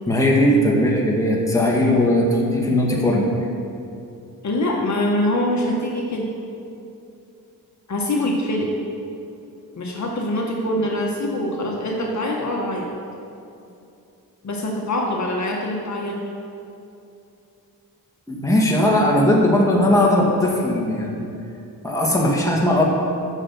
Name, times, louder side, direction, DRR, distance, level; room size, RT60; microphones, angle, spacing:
voice 1, 0.1-3.3 18.3-21.2 21.8-22.8, left 1 dB, 10° left, -3 dB, 2.0 m, -18 dB
voice 2, 4.4-6.3 7.9-8.7 9.7-12.9 14.4-16.2, left 1 dB, 50° left, -1 dB, 1.5 m, -24 dB
10.0 x 6.8 x 7.1 m, 2.7 s
wide cardioid pair, 110°, 36 cm